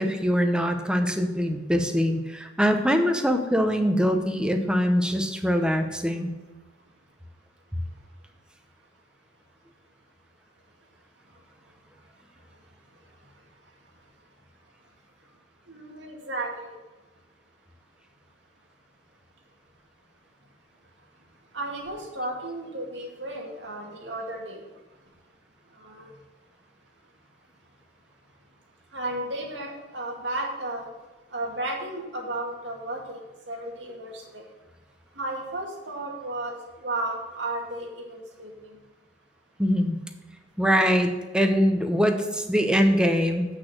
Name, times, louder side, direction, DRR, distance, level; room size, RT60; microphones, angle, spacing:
voice 1, 0.0-6.3 39.6-40.0 40.6-43.5, equal, 5° right, 5 dB, 0.9 m, -23 dB
voice 2, 15.7-16.8 21.5-24.6 25.8-26.1 28.9-30.9 31.3-33.2 33.5-34.4 35.2-36.5 36.8-38.7, right 2 dB, 80° right, 0 dB, 2.3 m, -33 dB
8.5 x 6.4 x 6.1 m, 1.2 s
head